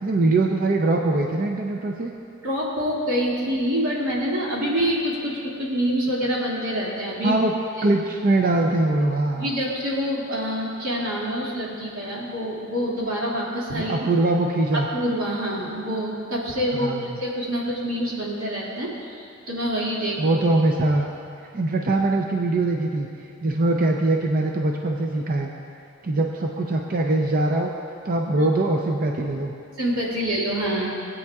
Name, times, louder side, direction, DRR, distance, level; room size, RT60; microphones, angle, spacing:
voice 1, 0.0-2.1 7.2-7.5 7.8-9.5 13.7-14.9 16.7-17.1 20.2-21.1 21.5-23.1 23.4-25.5 26.0-27.7 28.0-29.5, right 2 dB, 45° right, 1 dB, 0.5 m, -22 dB
voice 2, 2.4-7.4 7.8-7.9 9.4-14.1 14.7-20.4 28.4-28.5 29.8-30.9, equal, 90° right, -5 dB, 2.3 m, -26 dB
19.0 x 8.4 x 2.4 m, 2.5 s
head